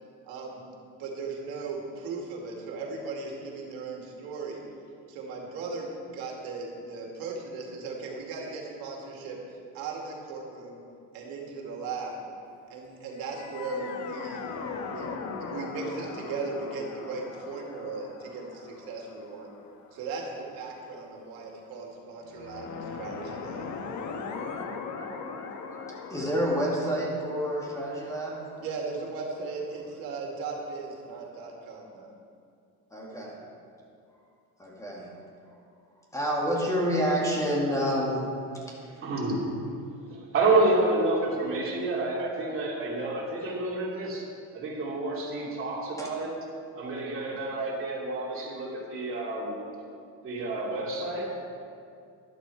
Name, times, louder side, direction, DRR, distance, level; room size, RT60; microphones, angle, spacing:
voice 1, 0.2-0.6 1.0-4.6 5.1-9.4 9.7-10.8 11.1-12.2 12.7-14.4 14.9-19.5 19.9-23.7 28.6-32.1, right 4 dB, 85° right, -1 dB, 2.3 m, -37 dB
sound 1, 13.2-20.4 22.3-30.1, left 5 dB, 55° left, 1.1 m, -40 dB
voice 2, 26.1-28.4 32.9-33.4 34.6-35.1 36.1-38.3 38.7-38.8 46.0-46.1, equal, 10° left, -3 dB, 1.9 m, -28 dB
voice 3, 39.0-39.5 40.1-44.2 44.5-46.4 46.8-49.6 50.2-51.4, right 2 dB, 35° right, -4 dB, 3.0 m, -29 dB
12.0 x 11.5 x 4.7 m, 2.4 s
cardioid pair, 150°, 35 cm